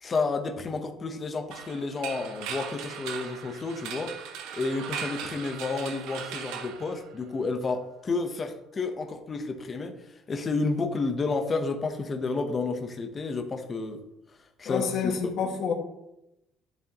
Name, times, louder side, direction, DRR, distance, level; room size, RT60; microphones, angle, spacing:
voice 1, 0.0-4.1 4.5-14.0 14.6-15.2, left 3 dB, 25° left, 4 dB, 0.9 m, -31 dB
sound 1, 1.5-7.5, right 7 dB, 85° right, 1.1 m, -38 dB
voice 2, 14.7-15.7, left 6 dB, 50° left, 2 dB, 1.8 m, -28 dB
11.5 x 7.4 x 2.9 m, 0.87 s
cardioid pair, 165°, 0 cm